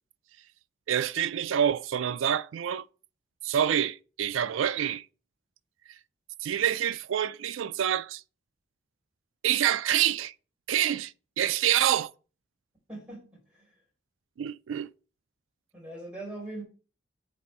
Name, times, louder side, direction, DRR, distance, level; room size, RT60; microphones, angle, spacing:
voice 1, 0.9-2.9 3.4-5.1 6.4-8.2 9.4-10.3 10.7-12.1 14.4-14.9, right 10 dB, 90° right, 0.4 m, -27 dB
voice 2, 12.9-13.7 15.7-16.6, right 2 dB, 5° right, 4.1 m, -41 dB
7.9 x 4.2 x 4.8 m
head